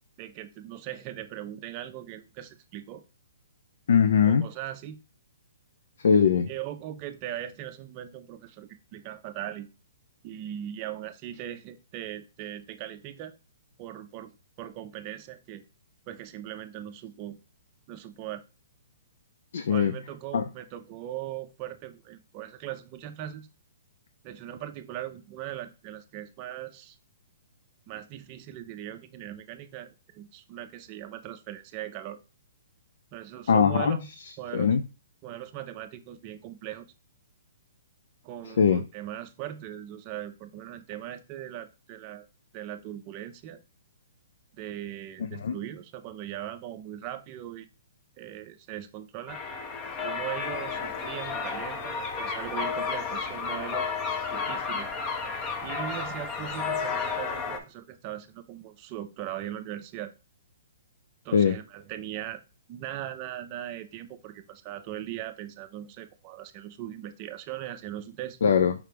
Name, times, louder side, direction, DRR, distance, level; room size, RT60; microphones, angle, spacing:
voice 1, 0.2-3.0 4.2-5.0 6.5-9.7 10.2-13.4 13.8-15.6 16.1-17.4 17.9-18.4 19.7-23.5 24.2-27.0 27.9-32.2 33.1-34.1 34.4-34.7 35.2-36.9 38.2-42.3 42.5-43.6 44.5-47.7 48.2-49.4 50.0-53.9 54.3-54.9 55.6-60.1 61.2-62.4 62.7-68.4, right 12 dB, 30° right, 8 dB, 0.4 m, -39 dB
voice 2, 3.9-4.4 6.0-6.5 19.5-19.9 20.3-20.4 33.5-34.0 34.5-34.8 38.6-38.8 45.4-45.5 61.3-61.5 68.4-68.7, left 7 dB, 70° left, 8 dB, 0.4 m, -21 dB
sound 1, 49.3-57.6, left 5 dB, 25° left, 0.6 m, -32 dB
4.9 x 3.2 x 3.4 m, 0.31 s
hypercardioid pair, 155°, 0 cm